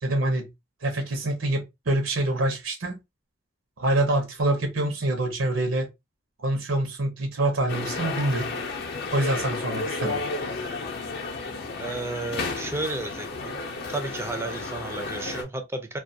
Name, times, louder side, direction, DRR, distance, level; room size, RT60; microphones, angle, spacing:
voice 1, 0.0-0.5 0.8-3.0 3.8-5.9 6.4-8.5 9.1-10.2, right 1 dB, 80° right, 0.7 m, -26 dB
sound 1, 7.7-15.4, left 3 dB, 50° left, 0.6 m, -32 dB
voice 2, 11.8-13.6 13.9-16.0, right 2 dB, 15° right, 0.4 m, -32 dB
2.3 x 2.1 x 2.7 m
head